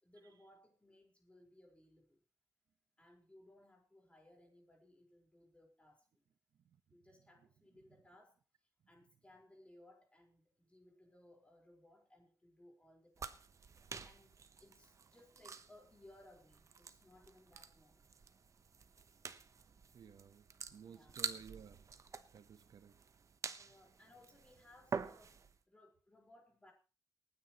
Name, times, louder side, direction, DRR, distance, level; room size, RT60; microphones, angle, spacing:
voice 1, 0.0-2.2 3.0-6.2 6.9-8.4 8.9-13.4 14.0-18.1 20.8-21.1 23.6-26.7, left 1 dB, 15° left, 4.7 m, -64 dB
sound 1, 13.2-25.6, right 5 dB, 50° right, 1.0 m, -48 dB
voice 2, 19.9-21.9 22.3-23.0, right 7 dB, 80° right, 1.0 m, -56 dB
27.5 x 9.7 x 3.1 m
wide cardioid pair, 105°, 7 cm